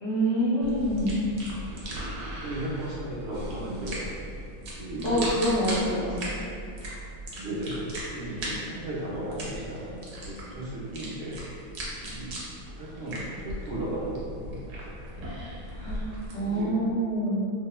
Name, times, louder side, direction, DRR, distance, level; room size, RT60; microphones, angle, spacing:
voice 1, 0.0-1.3 5.0-6.3 15.7-17.5, equal, 40° left, -10 dB, 0.7 m, -26 dB
sound 1, 0.6-16.6, right 1 dB, 85° right, 1.1 m, -38 dB
voice 2, 1.7-4.1 4.8-5.3 5.8-6.0 7.3-11.4 12.0-12.3 12.7-15.0 16.3-16.7, right 1 dB, 60° right, -7 dB, 0.8 m, -36 dB
2.8 x 2.0 x 2.3 m, 2.4 s
omnidirectional pair, 1.4 m